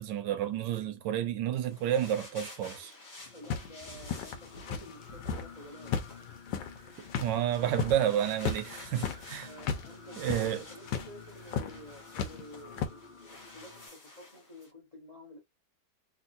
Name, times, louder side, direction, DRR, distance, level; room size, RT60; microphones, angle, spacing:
voice 1, 0.0-2.9 7.2-9.5 10.2-10.6, right 10 dB, 80° right, 1.4 m, -30 dB
sound 1, 1.6-14.7, left 2 dB, 40° left, 1.4 m, -51 dB
Singing, 3.2-13.9, left 5 dB, 70° left, 0.4 m, -52 dB
voice 2, 3.3-6.0 9.4-15.4, left 1 dB, 25° left, 1.0 m, -51 dB
sound 2, 3.5-5.5 5.8-9.9 10.2-10.5 10.9-11.1 11.5-11.8 12.1-12.9, left 6 dB, 90° left, 1.4 m, -35 dB
3.5 x 2.7 x 2.6 m
omnidirectional pair, 1.9 m